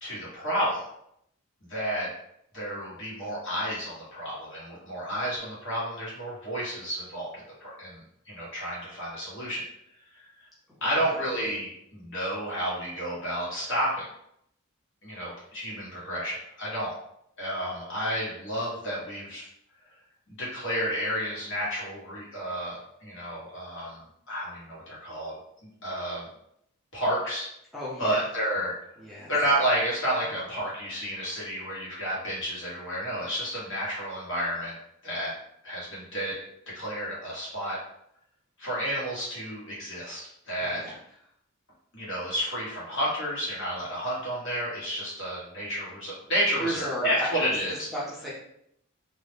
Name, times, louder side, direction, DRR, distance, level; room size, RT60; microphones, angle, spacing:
voice 1, 0.0-0.8 1.7-2.1 2.5-7.3 7.6-9.6 10.1-10.4 10.8-14.1 15.0-16.9 17.4-19.5 20.3-25.3 25.8-26.3 26.9-27.5 28.0-28.7 29.3-34.7 35.0-35.3 35.6-36.4 36.7-37.8 38.6-40.8 41.9-47.9, equal, 55° left, -6 dB, 1.2 m, -31 dB
voice 2, 10.8-11.1 27.7-28.2 29.0-29.3 40.6-40.9 46.6-47.3 47.9-48.3, equal, ahead, -7 dB, 0.5 m, -34 dB
2.7 x 2.1 x 3.2 m, 0.74 s
head